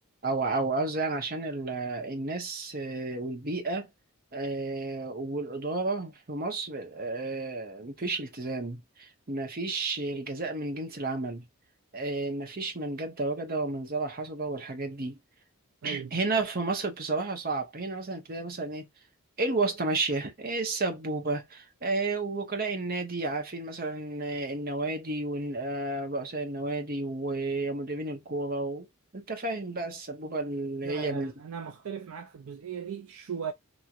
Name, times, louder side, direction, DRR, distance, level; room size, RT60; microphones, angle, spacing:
voice 1, 0.2-3.9 4.3-11.4 11.9-15.2 15.8-18.9 19.4-28.9 29.1-31.3, right 3 dB, 40° right, 0.9 m, -32 dB
voice 2, 15.8-16.1 30.8-33.5, right 7 dB, 70° right, 0.4 m, -37 dB
2.9 x 2.9 x 2.4 m
head